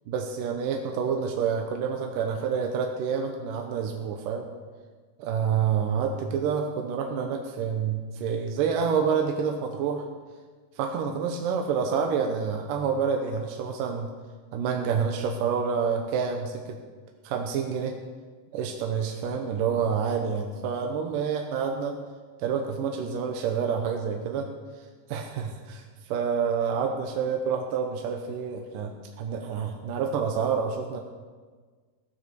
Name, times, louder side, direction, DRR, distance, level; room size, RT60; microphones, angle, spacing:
voice 1, 0.1-4.5 5.3-10.1 10.8-14.1 14.5-16.8 17.2-18.0 18.5-22.0 22.4-24.5 25.1-31.0, right 6 dB, 75° right, 3 dB, 2.6 m, -28 dB
16.5 x 9.5 x 6.9 m, 1.5 s
omnidirectional pair, 4.0 m